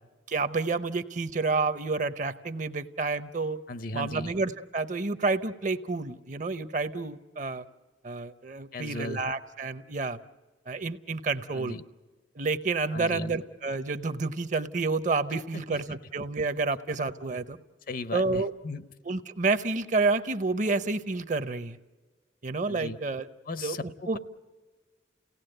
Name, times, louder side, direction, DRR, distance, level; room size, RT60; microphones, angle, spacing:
voice 1, 0.3-3.6 3.9-7.6 8.0-10.2 10.7-11.8 12.4-17.6 18.1-18.5 19.0-21.8 22.4-23.3 23.6-23.8 24.1-24.2, right 3 dB, 45° right, 12 dB, 0.7 m, -29 dB
voice 2, 3.7-4.3 8.7-9.2 11.5-11.8 12.9-13.4 15.5-15.8 17.9-18.8 22.7-23.0 23.5-24.2, left 2 dB, 50° left, 14 dB, 0.7 m, -37 dB
29.5 x 17.5 x 7.8 m, 1.3 s
head